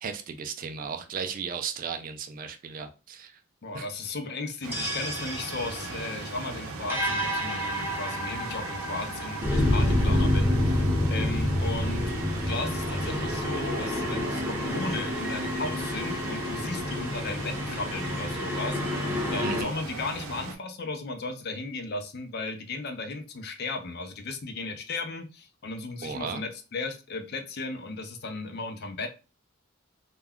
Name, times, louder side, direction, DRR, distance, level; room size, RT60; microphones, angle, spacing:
voice 1, 0.0-3.3 3.7-3.9 11.8-12.2 19.4-19.7 26.0-26.4, right 6 dB, 40° right, 0.3 m, -35 dB
voice 2, 3.6-29.1, left 3 dB, 50° left, 0.5 m, -36 dB
sound 1, 4.6-20.5, right 3 dB, 85° right, 0.6 m, -39 dB
sound 2, 4.7-19.6, left 1 dB, 10° right, 0.6 m, -28 dB
2.2 x 2.2 x 3.5 m
head